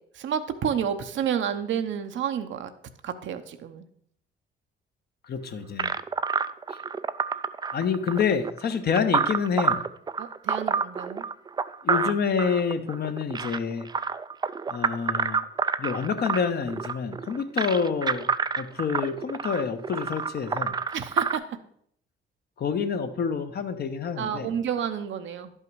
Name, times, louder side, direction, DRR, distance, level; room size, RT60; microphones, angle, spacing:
voice 1, 0.1-2.7 3.0-3.9 10.2-11.2 20.9-21.6 24.2-25.5, right 8 dB, 70° right, 8 dB, 0.8 m, -30 dB
voice 2, 5.3-5.9 7.7-9.8 11.8-13.9 14.7-15.5 15.8-18.3 18.6-20.7 22.6-24.5, left 6 dB, 55° left, 8 dB, 0.9 m, -27 dB
sound 1, 5.8-21.4, right 5 dB, 20° right, 0.3 m, -28 dB
11.0 x 5.6 x 4.7 m, 0.67 s
cardioid pair, 90°, 20 cm